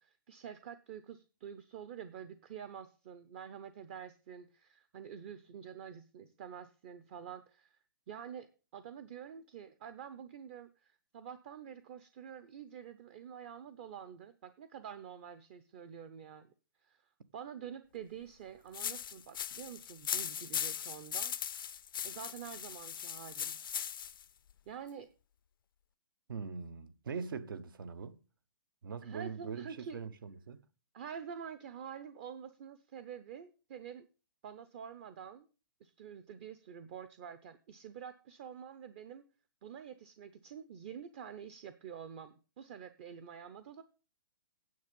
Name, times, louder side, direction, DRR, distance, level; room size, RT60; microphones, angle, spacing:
voice 1, 0.0-7.8 8.1-16.5 16.8-17.0 17.3-21.3 22.0-23.6 24.7-25.1 29.0-30.0 30.9-34.1 34.4-35.5 35.8-39.2 39.6-43.8, right 8 dB, 35° right, 0.7 m, -47 dB
sound 1, 18.7-24.2, left 9 dB, 75° left, 0.5 m, -39 dB
voice 2, 26.3-28.2 28.8-30.6, right 5 dB, 70° right, 1.1 m, -42 dB
9.5 x 7.3 x 5.2 m
hypercardioid pair, 160°, 12 cm